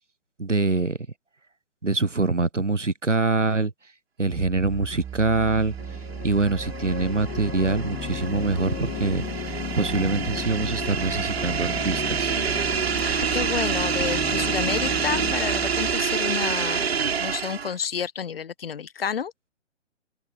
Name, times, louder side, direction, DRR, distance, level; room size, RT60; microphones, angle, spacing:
voice 1, 0.4-1.0 1.8-3.7 4.2-5.7 6.2-12.3, right 3 dB, 85° right, 1.5 m, -24 dB
sound 1, 4.3-15.9, right 9 dB, 10° right, 2.6 m, -37 dB
sound 2, 5.8-15.4, left 26 dB, 20° left, 2.6 m, -36 dB
sound 3, 5.9-17.8, right 6 dB, 60° right, 1.5 m, -27 dB
voice 2, 13.0-19.3, left 7 dB, 55° left, 1.5 m, -30 dB
open air
figure-of-eight pair, 130°, 35 cm